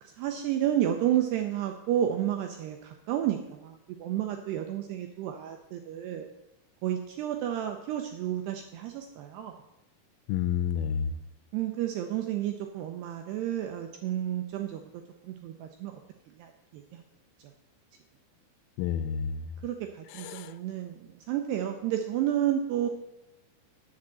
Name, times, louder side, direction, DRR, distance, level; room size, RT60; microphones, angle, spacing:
voice 1, 0.0-6.3 6.8-9.5 11.5-16.0 16.3-17.0 19.6-22.9, right 11 dB, 80° right, 4 dB, 2.4 m, -31 dB
voice 2, 10.3-11.1 18.8-19.5 20.1-20.5, left 8 dB, 85° left, 13 dB, 3.2 m, -30 dB
9.9 x 7.3 x 7.5 m, 0.93 s
omnidirectional pair, 5.5 m